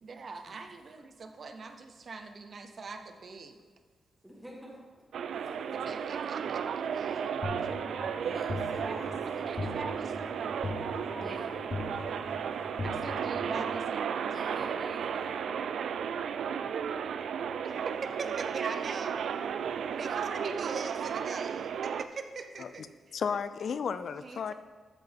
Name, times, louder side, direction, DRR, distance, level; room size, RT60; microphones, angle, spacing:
voice 1, 0.0-3.6 5.7-7.4 8.6-10.6 12.8-14.3 17.6-19.1 19.7-22.9 24.2-24.5, right 4 dB, 45° right, 6 dB, 0.7 m, -42 dB
voice 2, 4.2-5.0 5.4-5.5 8.1-9.5 11.1-11.7 14.3-15.3 20.2-20.3, equal, 5° right, -3 dB, 1.4 m, -47 dB
sound 1, 5.1-22.0, right 7 dB, 75° right, 0.3 m, -34 dB
sound 2, 7.4-13.8, left 3 dB, 30° left, 0.8 m, -40 dB
voice 3, 23.1-24.5, left 6 dB, 60° left, 13 dB, 0.4 m, -33 dB
13.0 x 5.7 x 3.5 m, 1.4 s
wide cardioid pair, 140°, 0 cm